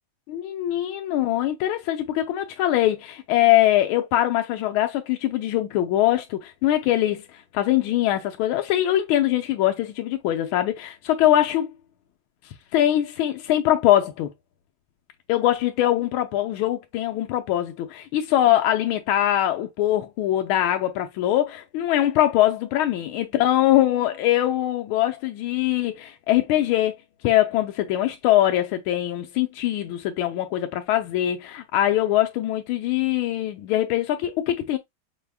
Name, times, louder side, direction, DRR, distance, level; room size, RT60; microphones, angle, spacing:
voice 1, 0.3-11.7 12.7-14.3 15.3-26.9 27.2-34.8, left 13 dB, 85° left, 1.4 m, -22 dB
5.4 x 3.4 x 2.3 m
omnidirectional pair, 2.3 m